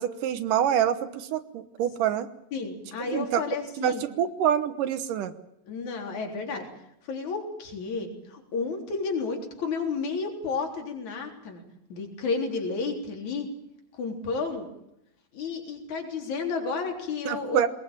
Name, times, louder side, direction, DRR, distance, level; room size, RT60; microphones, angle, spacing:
voice 1, 0.0-2.3 3.1-3.4 3.8-5.3 17.3-17.7, right 9 dB, 75° right, 11 dB, 2.6 m, -26 dB
voice 2, 2.5-4.0 5.7-6.7 7.1-11.6 11.9-13.5 14.0-14.7 15.3-17.6, left 4 dB, 60° left, 2 dB, 5.0 m, -31 dB
21.5 x 20.5 x 9.0 m, 0.80 s
omnidirectional pair, 3.9 m